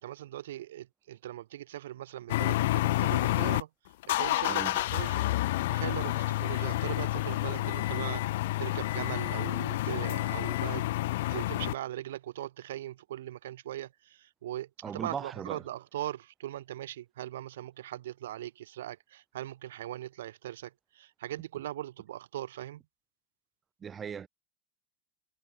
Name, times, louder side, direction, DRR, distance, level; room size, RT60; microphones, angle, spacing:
voice 1, 0.0-3.7 4.2-5.3 5.7-8.2 8.6-10.9 11.3-22.8, right 13 dB, 85° right, 1.7 m, -40 dB
sound 1, 2.3-3.6 4.0-11.7, left 17 dB, 75° left, 0.7 m, -29 dB
voice 2, 14.8-15.6 23.8-24.3, right 7 dB, 25° right, 3.0 m, -38 dB
supercardioid pair, 125°, 0 cm